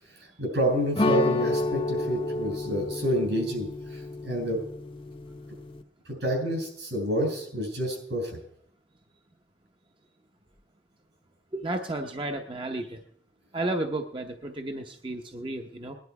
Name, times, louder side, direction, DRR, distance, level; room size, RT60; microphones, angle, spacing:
voice 1, 0.4-4.6 6.1-8.3, equal, 75° right, 1 dB, 6.4 m, -28 dB
sound 1, 1.0-5.8, left 2 dB, 30° left, 0.7 m, -30 dB
voice 2, 11.5-13.0 13.5-16.0, right 2 dB, 30° right, 4 dB, 0.8 m, -32 dB
19.0 x 10.5 x 4.7 m, 0.69 s
head